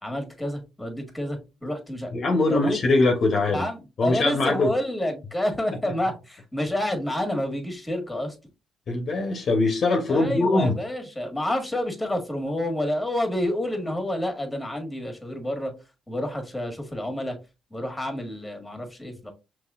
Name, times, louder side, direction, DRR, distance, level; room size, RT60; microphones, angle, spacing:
voice 1, 0.0-2.1 2.5-2.8 3.5-8.3 10.1-15.7 16.1-17.4 17.7-19.3, left 1 dB, 10° left, 1.6 m, -29 dB
voice 2, 2.1-3.7 4.0-4.7 5.8-5.9 8.9-10.7, left 2 dB, 55° left, 1.0 m, -22 dB
5.5 x 3.1 x 2.4 m
supercardioid pair, 70°, 0 cm